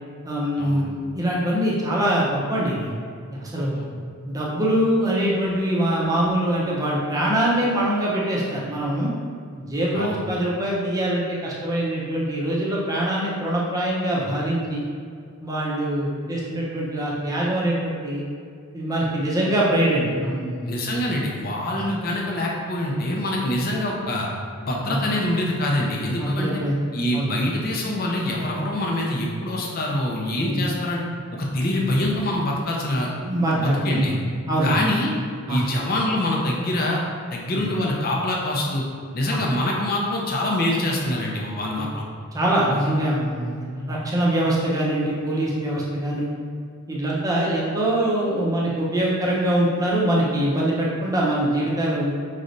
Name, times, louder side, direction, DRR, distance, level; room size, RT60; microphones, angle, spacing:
voice 1, 0.2-2.9 3.3-3.8 4.3-9.1 9.6-14.8 15.4-18.2 18.7-20.7 24.9-25.0 26.2-26.8 27.1-27.3 30.5-30.6 33.2-34.1 34.5-34.8 35.5-35.6 37.5-37.6 39.3-39.4 42.3-46.3 46.9-52.1, right 1 dB, 15° right, -5 dB, 0.7 m, -23 dB
voice 2, 20.7-24.3 24.6-26.5 26.9-31.0 31.3-33.1 33.6-34.1 34.6-35.1 35.5-37.0 37.3-38.8 39.1-42.0, left 1 dB, 40° left, -2 dB, 0.6 m, -25 dB
5.1 x 3.2 x 2.6 m, 2.2 s
head